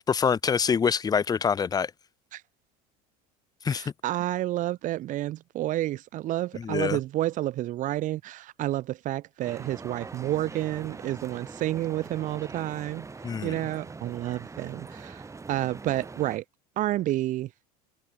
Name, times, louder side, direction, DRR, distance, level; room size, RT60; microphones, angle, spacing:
voice 1, 0.0-1.9 3.6-3.8 6.6-7.0 13.2-13.5, left 6 dB, 20° left, 0.6 m, -25 dB
voice 2, 3.7-13.1 13.4-15.2 15.5-16.4 16.8-17.5, right 15 dB, 40° right, 0.5 m, -30 dB
sound 1, 9.4-16.4, right 4 dB, 15° right, 1.4 m, -43 dB
hypercardioid pair, 95°, 21 cm